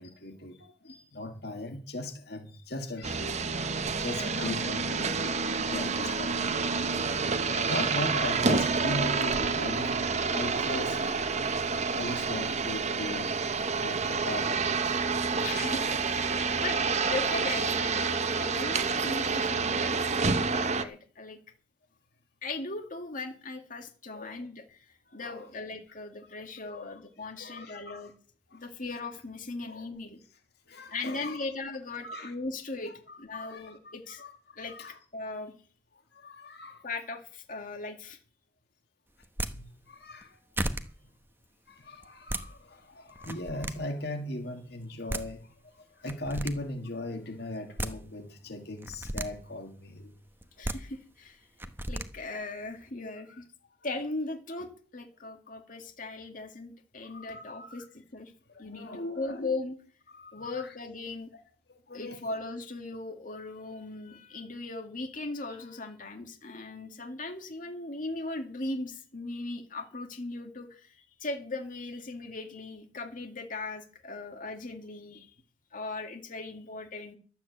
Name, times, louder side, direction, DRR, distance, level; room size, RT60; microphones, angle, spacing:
voice 1, 0.0-6.5 7.7-10.0 10.3-11.0 11.8-13.3 13.8-15.0 15.3-15.6 19.0-19.1 24.1-24.4 25.1-25.5 26.7-27.0 27.4-28.1 28.5-28.6 29.6-29.9 30.7-31.5 32.0-32.3 32.9-35.0 36.1-36.9 39.5-40.4 41.7-50.1 57.0-57.9 58.5-59.5 60.1-60.7 61.7-62.2, left 1 dB, 65° left, 2.1 m, -39 dB
sound 1, 3.0-20.8, right 4 dB, 40° right, 1.1 m, -28 dB
voice 2, 4.1-4.6 5.5-5.6 7.4-7.9 15.4-21.4 22.4-24.9 25.1-28.1 28.5-30.2 30.9-34.2 34.6-34.8 35.1-35.5 36.8-38.2 50.6-51.5 51.9-53.4 53.8-58.3 58.6-59.8 60.3-61.3 61.9-75.3 75.7-77.2, left 3 dB, 50° left, 2.1 m, -38 dB
sound 2, 39.2-39.5 40.2-40.3 40.6-40.8 42.0-42.4 43.2-43.7 44.8-44.9 45.1-45.2 46.1-46.5 47.5-47.9 48.8-49.3 50.4-50.8 51.6-52.1, right 1 dB, 15° right, 1.1 m, -33 dB
12.5 x 8.3 x 8.0 m
head